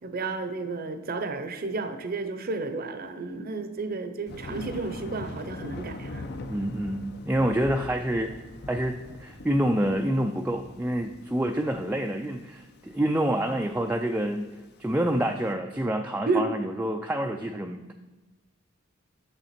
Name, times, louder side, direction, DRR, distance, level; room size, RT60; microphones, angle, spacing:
voice 1, 0.0-6.2 16.3-16.5, right 3 dB, 45° right, 9 dB, 0.7 m, -31 dB
Thunder, 4.3-15.4, left 2 dB, 55° left, 0.7 m, -42 dB
voice 2, 6.5-8.3 8.7-14.5 14.8-17.9, right 1 dB, 10° right, 3 dB, 0.4 m, -27 dB
9.0 x 6.7 x 4.2 m, 1.2 s
head